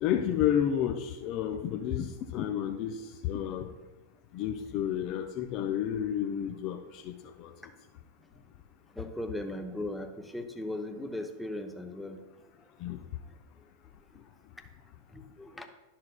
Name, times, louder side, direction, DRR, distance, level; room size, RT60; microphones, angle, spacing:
voice 1, 0.0-3.7 4.3-7.1 7.4-7.5 12.8-13.0, left 9 dB, 40° left, 4 dB, 0.5 m, -31 dB
voice 2, 9.0-12.2 15.1-15.7, left 1 dB, 5° left, 5 dB, 0.7 m, -37 dB
12.0 x 5.7 x 2.3 m, 1.0 s
figure-of-eight pair, 90°, 0 cm